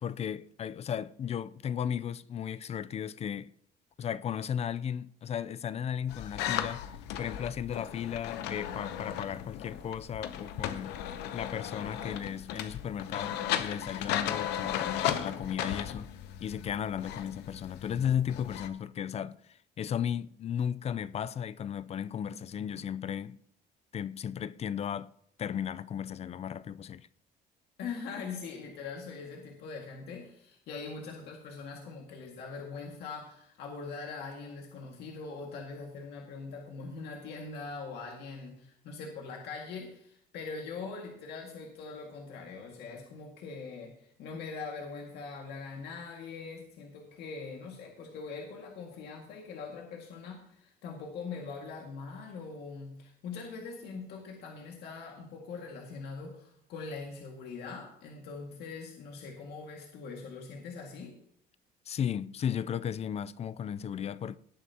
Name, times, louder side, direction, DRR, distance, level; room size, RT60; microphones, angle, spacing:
voice 1, 0.0-3.5 4.0-6.8 7.2-11.0 11.3-16.1 16.4-23.4 23.9-25.1 25.4-27.1 61.9-64.4, left 8 dB, 40° left, 0.4 m, -35 dB
sound 1, 6.1-18.7, left 10 dB, 90° left, 0.8 m, -36 dB
voice 2, 27.8-61.1, left 4 dB, 75° left, 2.0 m, -42 dB
18.0 x 9.2 x 2.9 m
cardioid pair, 110°, 17 cm